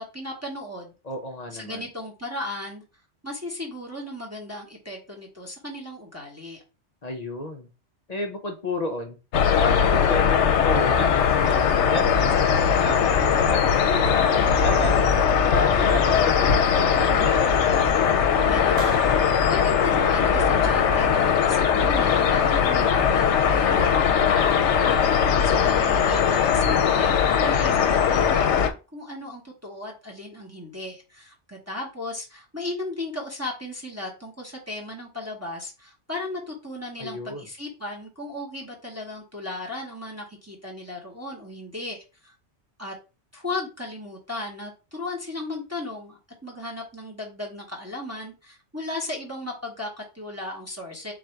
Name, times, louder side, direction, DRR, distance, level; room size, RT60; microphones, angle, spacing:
voice 1, 0.0-0.9 1.5-2.8 3.2-6.6 18.4-42.3 42.8-42.9 43.3-51.1, left 2 dB, 15° right, 1.0 m, -36 dB
voice 2, 1.0-1.8 7.0-7.7 8.1-9.2 9.6-12.3 12.7-15.1 15.5-17.6 25.2-25.6 37.0-37.5, left 1 dB, 45° left, 0.6 m, -32 dB
sound 1, 9.3-28.7, left 7 dB, 75° left, 0.9 m, -20 dB
Clapping, 18.8-20.6, right 1 dB, 60° right, 1.4 m, -38 dB
4.0 x 2.5 x 4.4 m
omnidirectional pair, 1.2 m